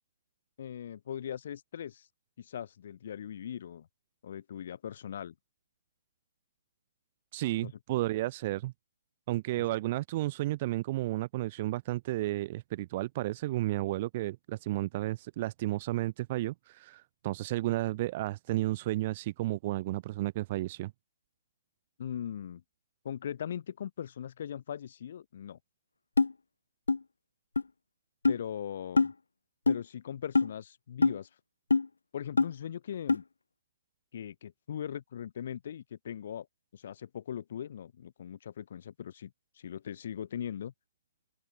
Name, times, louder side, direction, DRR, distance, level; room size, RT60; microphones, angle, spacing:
voice 1, 0.6-2.1 2.4-3.9 4.2-5.3 7.6-7.7 22.0-22.6 23.0-25.6 28.3-29.1 29.7-31.3 32.1-33.2 34.1-36.5 36.7-40.7, left 9 dB, 50° left, 5.7 m, -40 dB
voice 2, 7.3-8.7 9.3-20.9, right 17 dB, 35° right, 1.8 m, -32 dB
sound 1, 26.2-26.3 26.9-27.0 27.6-27.7 28.2-28.4 29.0-29.1 29.7-29.8 30.3-30.5 31.0-31.2 31.7-31.9 32.4-32.5 33.1-33.2, left 4 dB, 80° left, 0.6 m, -24 dB
open air
figure-of-eight pair, 140°, 0 cm